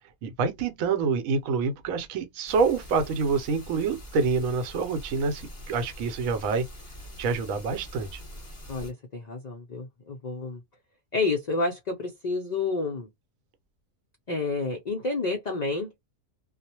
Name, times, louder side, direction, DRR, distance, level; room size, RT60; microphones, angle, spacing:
voice 1, 0.2-6.7 7.2-8.2, right 5 dB, 80° right, 1.0 m, -27 dB
sound 1, 2.5-8.9, equal, 15° left, 1.1 m, -44 dB
voice 2, 8.7-10.6 11.1-13.1 14.3-15.9, left 3 dB, 70° left, 0.4 m, -29 dB
2.3 x 2.0 x 2.8 m
omnidirectional pair, 1.4 m